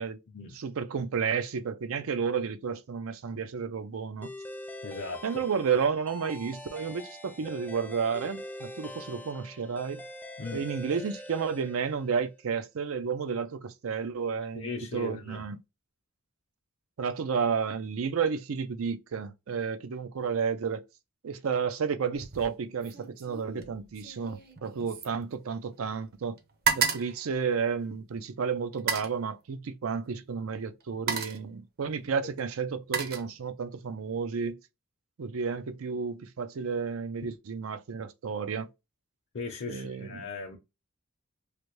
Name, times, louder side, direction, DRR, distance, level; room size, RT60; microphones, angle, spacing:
voice 1, 0.6-4.3 5.2-10.0 10.5-15.6 17.0-20.8 21.2-26.4 26.7-34.6 35.2-38.7 39.7-40.2, right 6 dB, 80° right, 0.5 m, -32 dB
sound 1, 4.2-12.3, left 1 dB, 10° left, 0.5 m, -44 dB
voice 2, 4.8-5.4 10.4-10.7 14.5-15.4 39.3-40.6, left 4 dB, 55° left, 0.6 m, -38 dB
sound 2, 22.1-22.5 22.8-25.9 26.2-28.1 28.7-29.2 30.2-30.4 30.8-31.5 32.4-33.8 34.1-34.5, right 6 dB, 50° right, 0.7 m, -33 dB
3.3 x 2.5 x 3.1 m
head